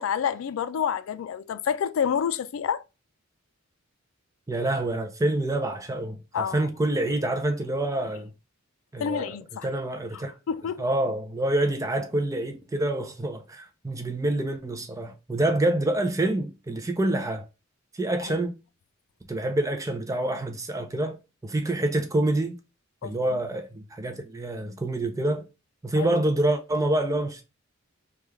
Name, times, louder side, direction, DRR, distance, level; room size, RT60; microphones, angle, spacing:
voice 1, 0.0-2.8 6.3-6.7 9.0-9.8 10.1-10.8 23.0-23.4 26.0-26.1, left 7 dB, 75° left, 0.3 m, -29 dB
voice 2, 4.5-8.3 8.9-9.4 9.6-10.3 10.8-17.4 17.9-18.6 19.3-21.2 21.4-22.6 23.0-25.4 25.8-27.5, right 1 dB, 15° right, 0.4 m, -27 dB
3.2 x 2.3 x 3.2 m
head